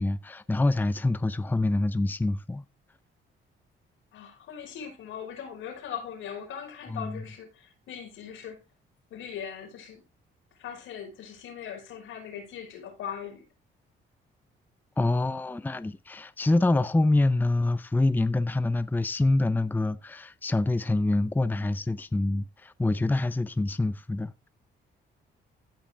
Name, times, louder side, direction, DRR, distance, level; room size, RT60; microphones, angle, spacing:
voice 1, 0.0-2.6 6.9-7.2 15.0-24.5, left 2 dB, 10° left, 0.6 m, -26 dB
voice 2, 4.1-8.6 9.1-10.0 10.5-13.5, left 8 dB, 85° left, 5.2 m, -40 dB
16.0 x 5.8 x 3.4 m
cardioid pair, 90°, 20 cm